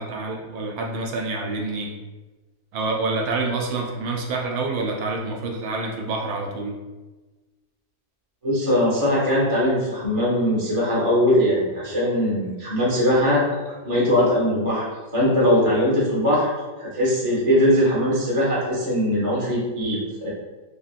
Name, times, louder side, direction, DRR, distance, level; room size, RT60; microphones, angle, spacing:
voice 1, 0.0-1.9 2.7-6.8, right 3 dB, 75° right, 0 dB, 1.0 m, -27 dB
voice 2, 8.4-13.5 13.8-14.9 15.1-16.5 16.8-20.3, equal, 35° right, -6 dB, 0.5 m, -20 dB
3.0 x 2.6 x 2.4 m, 1.2 s
omnidirectional pair, 1.7 m